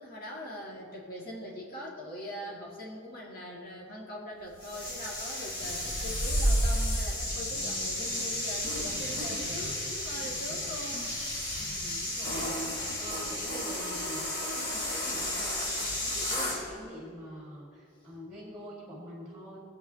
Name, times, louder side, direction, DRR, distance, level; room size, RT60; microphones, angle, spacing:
voice 1, 0.0-11.1, equal, 50° left, -4 dB, 1.9 m, -42 dB
sound 1, 4.6-16.6, equal, 65° left, 2.7 m, -32 dB
voice 2, 11.6-12.6 13.0-19.6, equal, 5° right, -4 dB, 1.7 m, -45 dB
19.0 x 7.9 x 2.7 m, 2.4 s
head